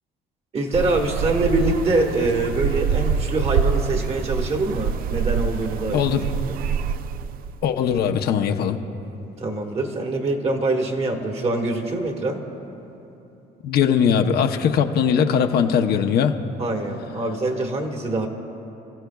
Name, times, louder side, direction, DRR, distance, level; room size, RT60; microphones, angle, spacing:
voice 1, 0.5-6.0 9.4-12.4 16.6-18.3, right 2 dB, 40° right, 2 dB, 1.6 m, -24 dB
sound 1, 0.7-7.6, right 7 dB, 60° right, 0.4 m, -25 dB
voice 2, 5.9-6.2 7.6-8.8 13.6-16.3, left 7 dB, 70° left, 4 dB, 0.8 m, -20 dB
29.0 x 14.5 x 2.3 m, 3.0 s
cardioid pair, 110°, 17 cm